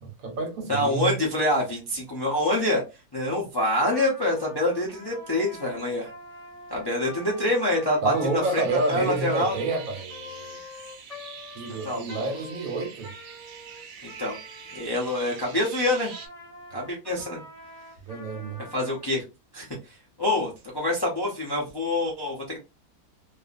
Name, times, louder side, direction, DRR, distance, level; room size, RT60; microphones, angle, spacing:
voice 1, 0.0-1.2 8.0-10.6 11.5-13.2 18.1-18.6, right 2 dB, 65° right, 1.2 m, -29 dB
voice 2, 0.7-2.8 3.1-6.1 6.7-8.6 8.9-9.5 11.8-12.2 14.0-14.4 14.7-16.1 16.7-17.4 18.7-19.2 19.5-22.6, left 1 dB, 35° left, 0.4 m, -26 dB
Trumpet, 3.9-15.6 16.1-19.1, left 2 dB, ahead, 1.3 m, -45 dB
sound 1, 8.4-16.3, right 7 dB, 80° right, 1.2 m, -44 dB
2.7 x 2.4 x 2.4 m
omnidirectional pair, 1.6 m